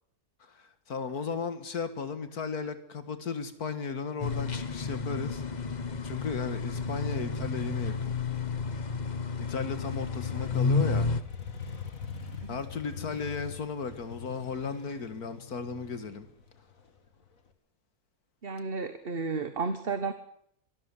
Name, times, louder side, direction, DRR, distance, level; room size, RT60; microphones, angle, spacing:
voice 1, 0.4-5.4 6.0-8.1 9.4-11.1 12.5-16.3, left 5 dB, 85° left, 2.3 m, -35 dB
sound 1, 4.2-11.2, left 4 dB, 35° left, 1.1 m, -31 dB
Motorcycle, 9.8-17.5, left 6 dB, 65° left, 2.5 m, -43 dB
voice 2, 18.4-20.1, right 4 dB, 40° right, 1.5 m, -33 dB
24.0 x 13.5 x 9.8 m
omnidirectional pair, 1.6 m